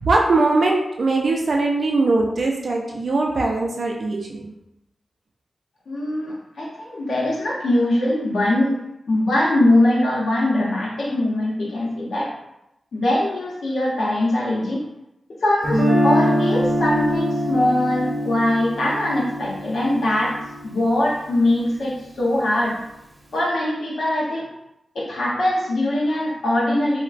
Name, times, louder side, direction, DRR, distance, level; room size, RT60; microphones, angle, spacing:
voice 1, 0.0-4.5, right 3 dB, 60° right, -1 dB, 0.3 m, -21 dB
voice 2, 5.9-8.8 9.1-12.3 12.9-14.8 15.4-20.4 20.6-22.8 23.3-24.5 24.9-27.0, left 1 dB, 90° left, -5 dB, 0.7 m, -21 dB
Guitar, 15.6-21.6, equal, 40° right, 0.7 m, -23 dB
3.1 x 2.1 x 2.4 m, 0.86 s
wide cardioid pair, 105°, 0 cm